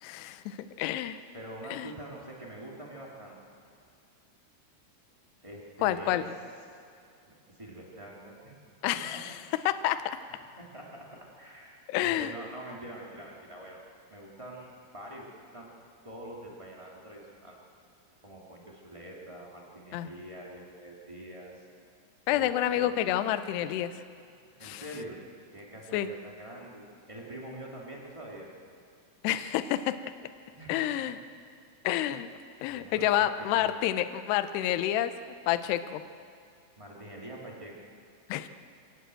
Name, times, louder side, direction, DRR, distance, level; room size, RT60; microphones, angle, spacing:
voice 1, 0.0-1.2 1.7-1.9 5.8-6.2 8.8-9.4 9.7-10.2 11.9-12.3 19.9-20.1 22.3-23.9 24.6-24.8 25.9-26.1 29.2-29.9 30.7-31.2 31.8-32.3 32.6-35.1 35.5-36.0 38.3-38.5, left 12 dB, 85° left, 11 dB, 2.3 m, -29 dB
voice 2, 1.3-3.4 5.4-6.2 7.3-8.6 8.9-9.2 10.4-11.1 11.4-13.8 14.1-15.3 15.5-15.7 16.0-17.6 18.2-21.6 22.3-23.0 24.6-25.2 25.5-28.5 30.5-31.1 32.6-33.8 36.8-37.7, right 1 dB, 15° right, -3 dB, 1.2 m, -45 dB
25.0 x 18.0 x 7.8 m, 2.4 s
omnidirectional pair, 5.9 m